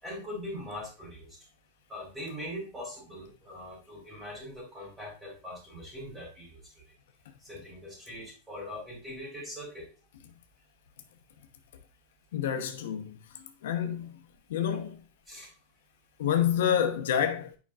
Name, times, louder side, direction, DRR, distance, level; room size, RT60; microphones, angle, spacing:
voice 1, 0.0-1.4 1.9-6.6 7.4-9.9 15.3-15.5, left 1 dB, 10° right, 3.9 m, -41 dB
voice 2, 12.3-13.2 13.6-14.1 14.5-15.0 16.2-17.5, left 9 dB, 85° left, 0.9 m, -28 dB
8.1 x 5.2 x 2.4 m
supercardioid pair, 150°, 0 cm